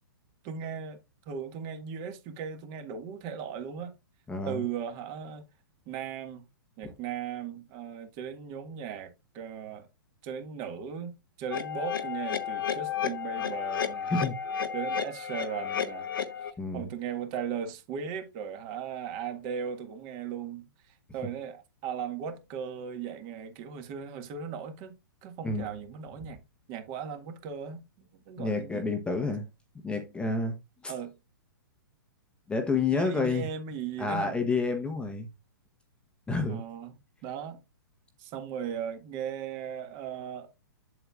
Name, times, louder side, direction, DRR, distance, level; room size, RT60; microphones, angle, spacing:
voice 1, 0.4-1.0 1.2-3.9 4.5-5.5 5.9-6.5 6.8-9.9 10.2-11.1 11.4-14.1 14.7-16.1 16.4-20.6 21.1-24.9 25.2-26.4 26.7-28.8 30.9-31.1 32.9-34.4 36.5-36.9 37.2-37.6 38.2-40.5, right 7 dB, 35° right, 1.7 m, -37 dB
voice 2, 4.3-4.6 6.8-6.9 14.1-14.4 16.6-16.9 25.4-25.7 28.4-29.5 29.8-30.6 30.8-30.9 32.5-33.5 34.0-35.3 36.3-36.6, left 3 dB, 10° left, 1.0 m, -29 dB
sound 1, 11.5-16.5, left 8 dB, 70° left, 1.1 m, -32 dB
8.0 x 7.7 x 2.4 m
hypercardioid pair, 120°, 12 cm